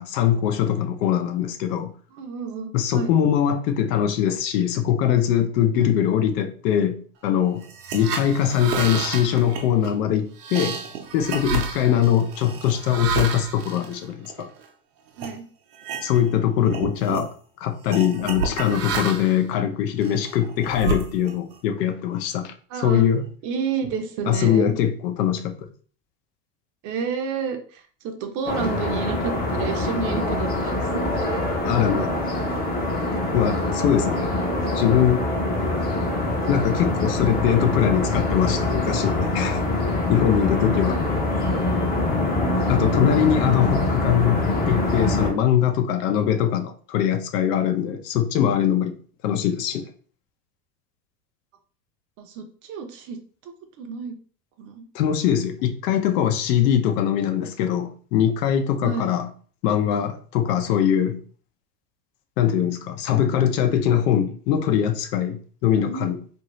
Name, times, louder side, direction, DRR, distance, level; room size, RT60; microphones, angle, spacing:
voice 1, 0.0-1.9 2.7-7.6 7.9-10.8 11.1-14.5 16.0-17.3 17.6-23.2 24.3-25.5 31.6-32.2 33.3-34.3 34.7-35.2 36.5-39.6 40.1-41.0 42.7-49.0 49.2-49.8 54.9-59.3 59.6-61.2 62.4-66.2, left 9 dB, 75° left, 0.7 m, -22 dB
voice 2, 2.1-3.1 5.7-6.1 11.9-12.1 15.2-15.4 22.7-23.1 23.4-24.7 26.8-31.5 40.6-41.5 42.4-43.3 43.5-43.7 52.2-53.2 53.4-53.5 53.8-54.1 54.6-54.9 58.8-59.1 65.7-66.1, right 6 dB, 40° right, 0.6 m, -31 dB
sound 1, 7.6-14.7 15.2-15.4 15.7-16.4 16.6-17.3 17.9-19.4 20.0-21.5, right 5 dB, 80° right, 0.8 m, -30 dB
sound 2, 28.5-45.3, left 2 dB, 20° left, 0.7 m, -24 dB
2.7 x 2.6 x 3.0 m
supercardioid pair, 135°, 48 cm